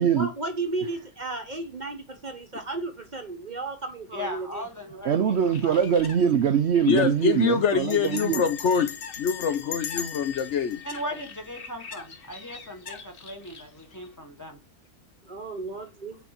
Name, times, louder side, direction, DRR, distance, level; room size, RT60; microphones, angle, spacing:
voice 1, 0.0-4.6 15.3-16.2, right 3 dB, 35° right, 1.0 m, -34 dB
voice 2, 4.1-5.4 5.6-5.7 10.8-14.6, left 1 dB, 15° left, 1.3 m, -38 dB
voice 3, 5.0-8.4, right 8 dB, 60° right, 0.8 m, -23 dB
Bird, 5.3-14.2, left 5 dB, 45° left, 1.1 m, -47 dB
Bell, 5.8-6.1 6.4-6.5 6.7-7.1 7.9-12.0, left 8 dB, 90° left, 1.4 m, -38 dB
voice 4, 6.9-8.9 9.2-10.8, left 7 dB, 60° left, 0.9 m, -24 dB
8.2 x 4.0 x 5.8 m
omnidirectional pair, 1.5 m